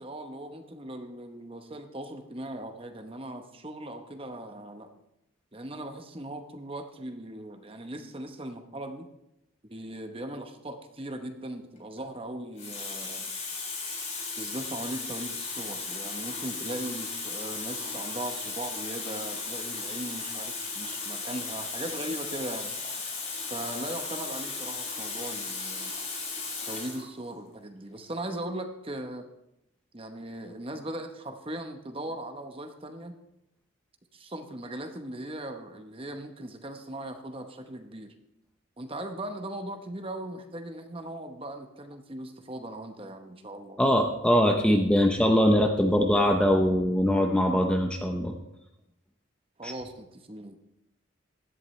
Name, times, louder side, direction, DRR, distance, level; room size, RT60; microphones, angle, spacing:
voice 1, 0.0-4.9 5.5-9.1 9.7-13.3 14.4-22.7 23.5-25.9 26.7-29.3 29.9-33.1 34.1-38.1 38.8-43.8 49.6-50.6, right 1 dB, 25° right, 6 dB, 0.9 m, -39 dB
Water tap faucet, 11.8-12.0 12.6-27.1 28.0-28.1, left 4 dB, 35° left, 3.2 m, -36 dB
voice 2, 43.8-48.3 49.6-49.7, equal, 5° left, 3 dB, 0.7 m, -22 dB
16.0 x 11.0 x 3.2 m, 0.86 s
head